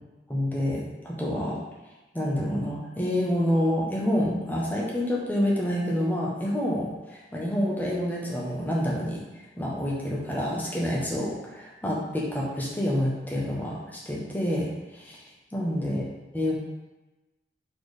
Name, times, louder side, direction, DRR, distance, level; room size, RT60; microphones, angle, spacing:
voice 1, 0.3-1.6 2.1-9.2 9.6-15.2 15.5-16.0 16.3-16.6, equal, 10° left, -4 dB, 1.1 m, -28 dB
4.7 x 4.3 x 4.9 m, 1.1 s
head